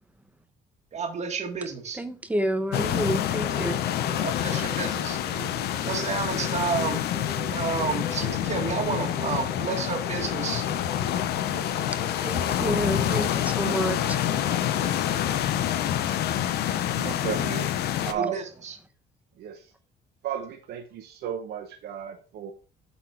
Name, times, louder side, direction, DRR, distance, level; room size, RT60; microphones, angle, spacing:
voice 1, 0.9-2.0 4.2-5.2 5.8-7.0 7.5-10.7 18.1-18.8, right 5 dB, 40° right, 1.8 m, -31 dB
voice 2, 2.0-3.7 12.2-14.2, right 1 dB, 10° right, 0.8 m, -29 dB
sound 1, 2.7-18.1, left 11 dB, 70° left, 0.7 m, -27 dB
sound 2, 2.7-15.4, right 4 dB, 25° right, 2.0 m, -42 dB
voice 3, 16.9-17.7 18.0-18.4 19.4-19.7 20.2-22.5, right 8 dB, 70° right, 0.9 m, -33 dB
8.3 x 4.2 x 4.4 m
cardioid pair, 110°, 17 cm